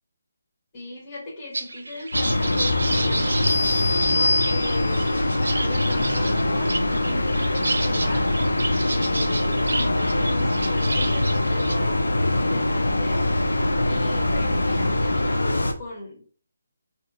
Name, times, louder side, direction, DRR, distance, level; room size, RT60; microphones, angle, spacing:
voice 1, 0.7-3.4 4.1-8.3 8.8-13.3 13.8-16.2, left 2 dB, 30° left, -6 dB, 1.3 m, -37 dB
sound 1, 1.5-11.8, right 2 dB, 75° right, 0.5 m, -31 dB
sound 2, 2.1-15.7, left 1 dB, 80° left, 0.5 m, -23 dB
sound 3, 3.4-5.1, left 2 dB, 60° left, 0.9 m, -25 dB
2.7 x 2.5 x 3.7 m, 0.43 s
figure-of-eight pair, 150°, 0 cm